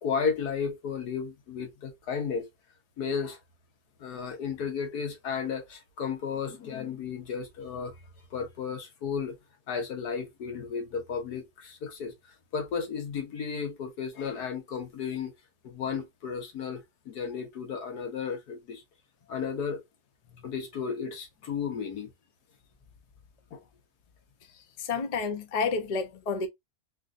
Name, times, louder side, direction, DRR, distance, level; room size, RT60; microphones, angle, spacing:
voice 1, 0.0-2.5 3.0-3.4 4.0-7.9 8.3-9.4 9.7-12.1 12.5-15.3 15.6-18.8 19.3-19.8 20.4-22.1 23.5-23.6, left 6 dB, 90° left, 1.6 m, -33 dB
voice 2, 24.8-26.5, left 4 dB, 45° left, 0.5 m, -30 dB
3.7 x 2.5 x 2.5 m
omnidirectional pair, 1.6 m